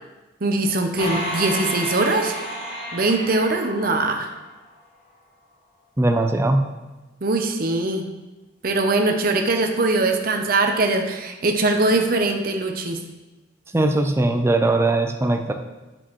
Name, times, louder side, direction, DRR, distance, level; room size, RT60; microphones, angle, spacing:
voice 1, 0.4-2.4 2.9-4.3 7.2-8.0 8.6-13.0, right 2 dB, 50° right, 4 dB, 0.7 m, -21 dB
sound 1, 1.0-4.6, equal, 30° left, 1.4 m, -31 dB
voice 2, 6.0-6.6 13.7-15.5, right 2 dB, 15° right, 5 dB, 0.4 m, -20 dB
8.7 x 6.1 x 3.1 m, 1.1 s
head